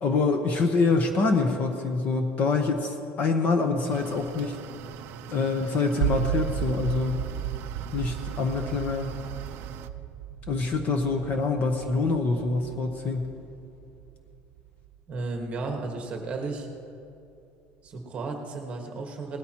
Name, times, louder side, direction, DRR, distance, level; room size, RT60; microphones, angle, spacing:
voice 1, 0.0-4.6 5.3-7.3 7.9-9.2 10.5-13.3, left 4 dB, 30° left, 5 dB, 0.8 m, -25 dB
sound 1, 3.9-9.9, right 10 dB, 50° right, 0.5 m, -43 dB
sound 2, 6.0-16.0, right 10 dB, 65° right, 0.8 m, -34 dB
voice 2, 15.1-16.7 17.8-19.4, right 3 dB, 25° right, 2 dB, 1.4 m, -34 dB
19.5 x 13.5 x 2.9 m, 2.7 s
cardioid pair, 175°, 5 cm